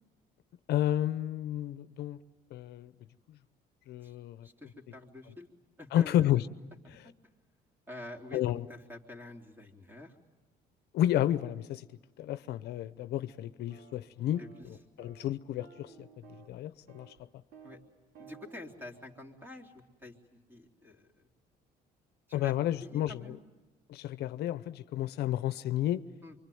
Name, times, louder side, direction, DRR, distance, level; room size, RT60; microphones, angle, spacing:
voice 1, 0.7-2.2 2.5-2.9 3.3-3.4 3.9-4.5 5.9-6.4 8.3-8.7 10.9-11.9 12.2-16.1 16.5-17.1 22.3-23.4 23.9-26.0, left 12 dB, 75° left, 0.8 m, -31 dB
voice 2, 4.4-5.5 5.8-6.3 6.8-7.1 7.9-10.2 14.4-14.7 17.6-17.8 18.2-21.1 22.3-22.5 22.8-23.4 26.2-26.4, left 2 dB, 10° right, 3.4 m, -48 dB
sound 1, 13.7-14.0 14.3-14.7 15.0-15.3 15.6-16.6 16.9-17.2 17.5-17.8 18.1-18.8, right 5 dB, 80° right, 3.0 m, -54 dB
25.5 x 24.5 x 9.3 m
cardioid pair, 110°, 17 cm